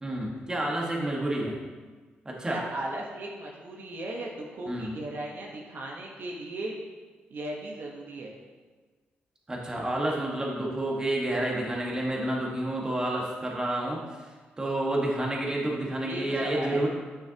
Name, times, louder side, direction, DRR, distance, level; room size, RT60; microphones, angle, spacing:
voice 1, 0.0-1.5 2.2-2.6 4.7-5.0 9.5-14.3 14.6-16.9, right 1 dB, 20° right, -2 dB, 1.5 m, -29 dB
voice 2, 2.5-6.8 7.3-8.3 16.0-16.9, right 1 dB, 65° right, -2 dB, 1.1 m, -36 dB
9.4 x 6.3 x 2.9 m, 1.4 s
cardioid pair, 105°, 4 cm